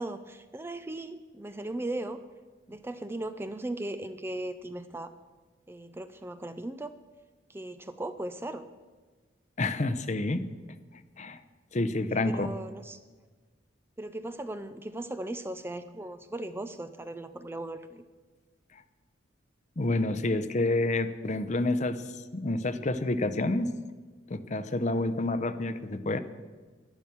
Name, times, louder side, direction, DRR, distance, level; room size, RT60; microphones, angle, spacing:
voice 1, 0.0-2.2 2.7-5.1 5.7-6.9 7.5-8.7 12.1-13.0 14.0-18.0, right 1 dB, 10° right, 11 dB, 0.4 m, -37 dB
voice 2, 9.6-10.5 11.2-11.4 11.7-12.5 19.8-22.0 22.3-23.7 24.3-26.2, left 2 dB, 40° left, 13 dB, 0.7 m, -28 dB
12.0 x 11.0 x 7.1 m, 1.4 s
head